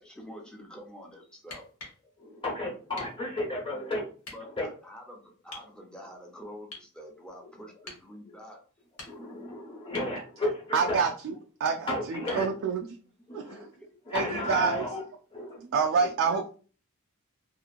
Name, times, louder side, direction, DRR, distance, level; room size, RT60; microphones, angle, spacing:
voice 1, 0.0-1.6 3.7-3.9 4.3-8.6 15.7-16.4, equal, 5° left, 0 dB, 0.6 m, -46 dB
sound 1, 1.4-2.0 3.0-3.2 4.2-4.4 5.5-5.7 6.7-6.9 7.9-8.1 8.8-9.4 9.9-10.2 12.3-12.5 14.4-14.5, left 2 dB, 70° left, 1.2 m, -45 dB
voice 2, 2.2-4.0 4.6-4.7 9.1-11.0 11.9-12.5 13.3-13.7 14.1-15.0 15.3-15.6, left 1 dB, 25° left, -2 dB, 1.0 m, -33 dB
voice 3, 10.7-11.3 11.6-12.9 13.3-13.7 14.1-14.9 15.6-16.5, right 5 dB, 55° right, 3 dB, 0.3 m, -27 dB
2.8 x 2.5 x 2.4 m, 0.39 s
head